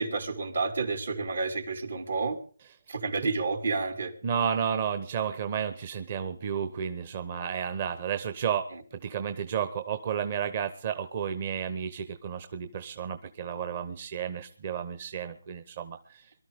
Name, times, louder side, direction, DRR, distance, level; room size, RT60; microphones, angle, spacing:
voice 1, 0.0-2.4 2.9-4.1 8.7-8.8, right 4 dB, 75° right, 6 dB, 2.6 m, -30 dB
voice 2, 4.2-16.2, right 8 dB, 40° right, 9 dB, 1.0 m, -32 dB
23.0 x 13.0 x 3.6 m, 0.39 s
hypercardioid pair, 160°, 0 cm